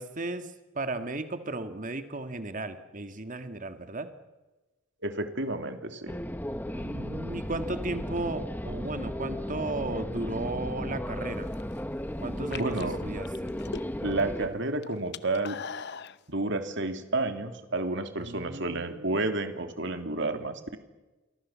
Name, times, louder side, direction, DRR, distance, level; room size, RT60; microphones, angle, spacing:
voice 1, 0.0-4.1 6.7-11.5 12.2-13.5 18.2-19.2, right 2 dB, 40° right, 8 dB, 1.8 m, -35 dB
voice 2, 5.0-6.2 12.6-13.0 14.0-15.6 16.3-20.8, right 2 dB, 55° right, 7 dB, 3.0 m, -31 dB
sound 1, 6.1-14.5, equal, 10° left, 1.3 m, -35 dB
sound 2, 11.3-11.8 12.4-14.2 14.5-16.2, left 6 dB, 50° left, 0.8 m, -40 dB
29.0 x 24.0 x 7.4 m, 1.1 s
head